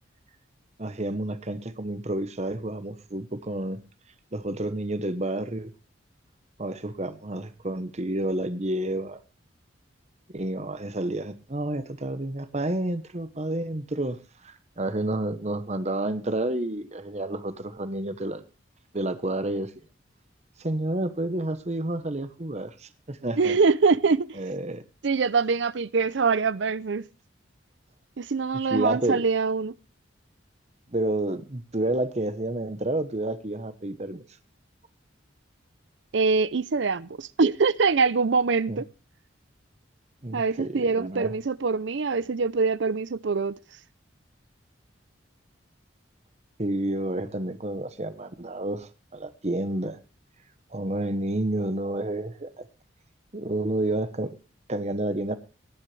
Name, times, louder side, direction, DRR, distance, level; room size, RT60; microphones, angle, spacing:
voice 1, 0.8-3.8 4.3-5.7 6.6-9.2 10.3-14.2 14.4-18.4 18.9-19.7 20.6-23.5 24.3-24.8 28.7-29.2 30.9-34.2 38.7-38.8 40.2-41.3 46.6-50.0 50.7-52.7 53.3-54.4 54.7-55.4, right 1 dB, 35° right, 1.1 m, -30 dB
voice 2, 23.4-24.4 25.0-27.0 28.2-29.7 36.1-38.9 40.3-43.6, right 4 dB, 65° right, 0.5 m, -24 dB
18.0 x 11.0 x 3.3 m
head